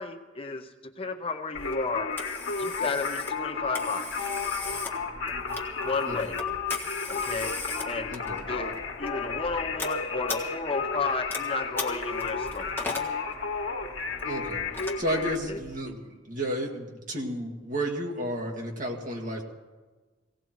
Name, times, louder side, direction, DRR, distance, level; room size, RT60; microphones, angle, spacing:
voice 1, 0.0-2.1 2.6-4.1 5.8-6.3 7.1-7.5 7.9-8.1 8.4-12.8 15.5-15.6, left 4 dB, 30° left, 5 dB, 0.7 m, -32 dB
Singing, 1.5-15.3, left 4 dB, 80° left, 1.4 m, -33 dB
Telephone, 1.6-15.8, left 3 dB, 10° left, 1.5 m, -39 dB
voice 2, 6.1-6.4 8.1-8.4 14.2-14.6 15.0-19.4, equal, 40° right, 1 dB, 2.1 m, -32 dB
17.5 x 17.0 x 4.6 m, 1.3 s
head